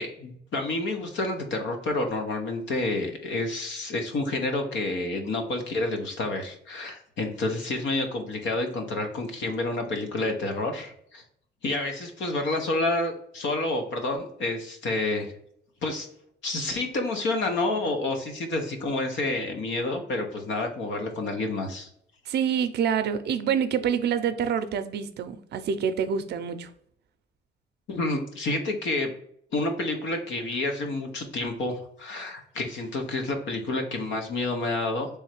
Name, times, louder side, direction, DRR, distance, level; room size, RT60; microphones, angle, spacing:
voice 1, 0.0-11.2 11.6-15.3 15.8-16.1 16.4-21.9 27.9-29.1 29.5-35.1, left 2 dB, 80° left, 4 dB, 1.0 m, -29 dB
voice 2, 22.3-26.7, right 7 dB, 60° right, 10 dB, 0.5 m, -27 dB
3.5 x 3.2 x 4.6 m, 0.69 s
cardioid pair, 165°, 19 cm